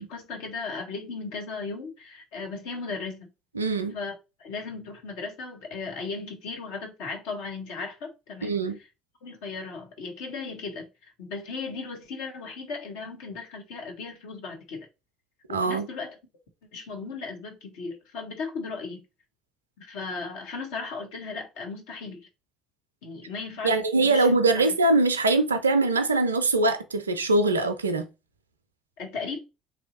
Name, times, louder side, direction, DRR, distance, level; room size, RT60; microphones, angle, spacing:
voice 1, 0.0-3.3 3.9-8.6 9.2-14.9 15.5-16.2 16.7-19.0 19.8-22.3 23.0-24.3 24.5-24.7 29.0-29.4, left 4 dB, 60° left, 0.9 m, -36 dB
voice 2, 3.6-4.0 8.4-8.8 15.5-15.9 23.6-28.0, right 2 dB, 80° right, 0.4 m, -22 dB
3.2 x 2.6 x 2.6 m
figure-of-eight pair, 55°, 0 cm